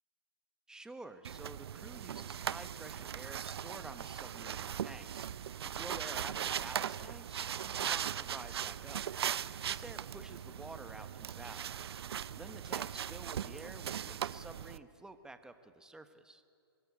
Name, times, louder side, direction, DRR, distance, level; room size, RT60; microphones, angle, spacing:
voice 1, 0.7-9.0 9.6-16.4, right 2 dB, 5° right, 9 dB, 1.3 m, -50 dB
sound 1, 1.2-14.8, right 9 dB, 70° right, 0.7 m, -39 dB
24.0 x 20.5 x 8.5 m, 2.4 s
hypercardioid pair, 130°, 14 cm